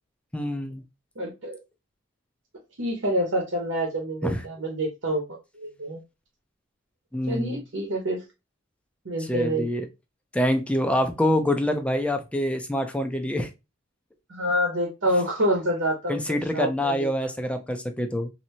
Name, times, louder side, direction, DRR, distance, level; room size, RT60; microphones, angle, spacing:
voice 1, 0.3-0.8 4.2-4.4 7.1-7.6 9.3-9.9 10.3-13.5 16.1-18.3, left 1 dB, 5° left, 0.4 m, -26 dB
voice 2, 1.2-1.6 2.8-6.0 7.3-8.2 9.0-9.7 14.3-17.1, equal, 75° right, 1.0 m, -27 dB
3.2 x 2.8 x 2.8 m
head